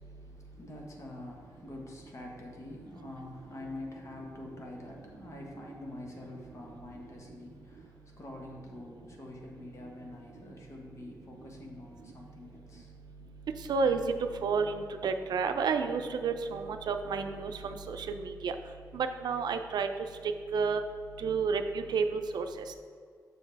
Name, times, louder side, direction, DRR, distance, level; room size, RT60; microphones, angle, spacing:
voice 1, 0.0-12.9, left 1 dB, 45° left, 0 dB, 1.3 m, -46 dB
voice 2, 13.7-14.0 14.4-18.5 18.9-19.9 20.5-20.8 21.2-22.7, right 5 dB, 90° right, 7 dB, 0.5 m, -30 dB
7.2 x 6.2 x 3.4 m, 2.1 s
wide cardioid pair, 100°, 7 cm